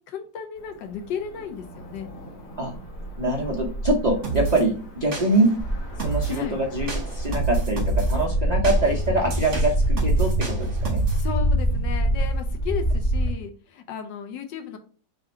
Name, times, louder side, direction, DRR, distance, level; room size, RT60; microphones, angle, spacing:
voice 1, 0.1-2.1 6.3-6.6 11.1-14.8, left 7 dB, 75° left, 6 dB, 1.4 m, -34 dB
Cricket / Motor vehicle (road), 0.5-7.4, right 1 dB, 60° left, 1.9 m, -38 dB
voice 2, 3.2-5.5 6.0-11.0, right 2 dB, 65° right, -2 dB, 0.4 m, -24 dB
sound 1, 4.2-4.6 5.1-5.6 6.0-6.4 6.9-8.2 8.6-11.3, right 5 dB, 45° right, 1.5 m, -29 dB
Walk footsteps, 5.6-13.3, right 1 dB, 40° left, 1.5 m, -24 dB
3.7 x 2.5 x 4.3 m, 0.42 s
omnidirectional pair, 2.0 m